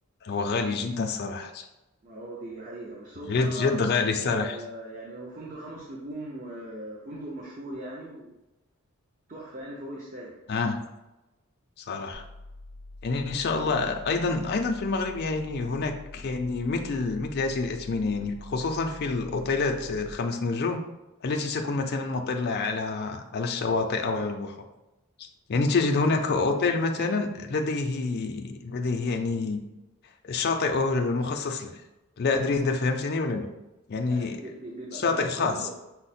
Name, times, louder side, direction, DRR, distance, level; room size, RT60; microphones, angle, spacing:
voice 1, 0.2-1.7 3.3-4.6 10.5-10.8 11.8-12.2 13.0-20.8 21.2-24.5 25.2-29.6 30.2-31.7 32.2-33.5 33.9-34.4 34.9-35.7, left 3 dB, 50° left, 4 dB, 0.4 m, -27 dB
voice 2, 2.0-3.8 4.3-8.3 9.3-10.4 34.0-35.7, right 1 dB, 40° right, -3 dB, 0.7 m, -39 dB
sound 1, 12.1-20.1, left 2 dB, 85° right, 1.0 m, -45 dB
5.6 x 2.1 x 4.1 m, 0.98 s
head